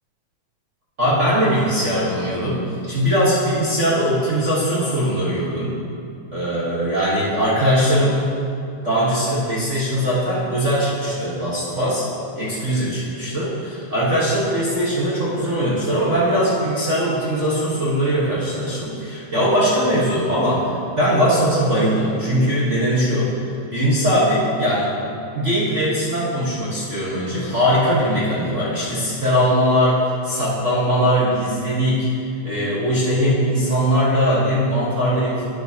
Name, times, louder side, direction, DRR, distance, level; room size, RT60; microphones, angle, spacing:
voice 1, 1.0-5.7 6.3-8.3 8.8-12.0 12.4-23.3 23.7-24.9 25.3-35.4, equal, 40° right, -9 dB, 1.1 m, -20 dB
11.5 x 8.8 x 2.9 m, 2.5 s
omnidirectional pair, 3.4 m